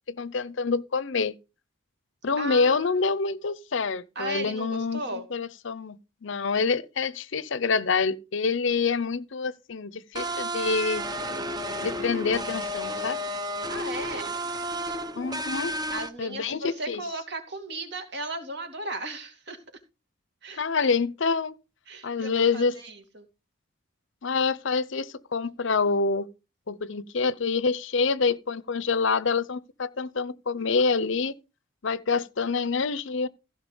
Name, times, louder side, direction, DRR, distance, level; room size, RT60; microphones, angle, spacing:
voice 1, 0.1-1.3 2.2-6.0 6.2-11.1 11.8-13.2 15.2-15.7 16.2-17.0 20.5-21.6 22.0-22.7 24.2-26.3 26.7-31.3 31.8-33.3, left 4 dB, 60° left, 0.7 m, -26 dB
voice 2, 2.4-3.0 4.2-5.3 13.7-14.3 14.9-15.0 15.9-19.6 20.4-20.6 21.9-23.3, right 2 dB, 50° right, 2.5 m, -36 dB
sound 1, 10.2-16.1, equal, 20° right, 0.9 m, -32 dB
15.5 x 5.7 x 5.4 m
head